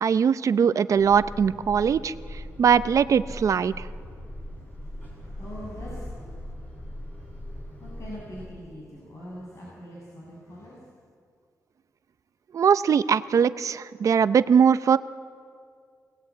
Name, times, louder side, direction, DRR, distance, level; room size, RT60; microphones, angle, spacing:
voice 1, 0.0-3.9 12.5-15.0, right 7 dB, 60° right, 14 dB, 0.7 m, -21 dB
sound 1, 0.9-8.5, equal, 25° left, 6.2 m, -40 dB
voice 2, 5.0-6.3 7.8-10.8, equal, 50° left, -6 dB, 7.2 m, -42 dB
25.0 x 18.5 x 8.6 m, 2.1 s
cardioid pair, 105°, 6 cm